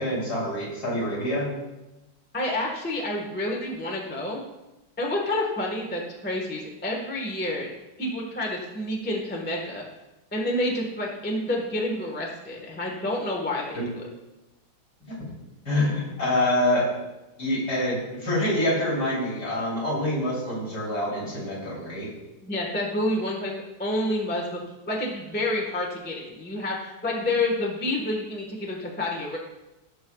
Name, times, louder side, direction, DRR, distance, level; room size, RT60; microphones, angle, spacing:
voice 1, 0.0-1.5 13.8-13.9 15.0-15.2 15.7-16.9 17.4-22.1, left 1 dB, 55° left, -6 dB, 3.9 m, -26 dB
voice 2, 2.3-4.4 5.0-7.7 8.0-9.8 10.3-14.0 22.4-23.5 23.8-24.6 24.9-29.4, left 1 dB, 5° left, -1 dB, 1.0 m, -29 dB
16.0 x 6.5 x 2.3 m, 1.0 s
omnidirectional pair, 2.0 m